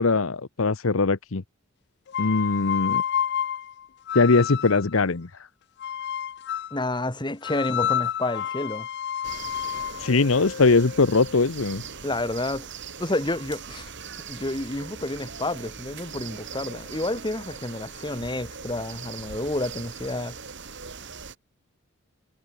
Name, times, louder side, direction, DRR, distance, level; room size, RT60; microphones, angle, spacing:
voice 1, 0.0-1.4 2.2-3.0 4.1-5.3 10.0-11.8, left 3 dB, 75° left, 0.9 m, -21 dB
sound 1, 2.1-4.9 5.8-6.8 7.4-11.4, left 9 dB, 55° left, 0.5 m, -30 dB
voice 2, 6.7-8.9 12.0-12.7 13.0-13.9 14.3-20.4, left 2 dB, 20° left, 2.4 m, -29 dB
sound 2, 9.2-21.4, right 5 dB, 60° right, 7.1 m, -40 dB
head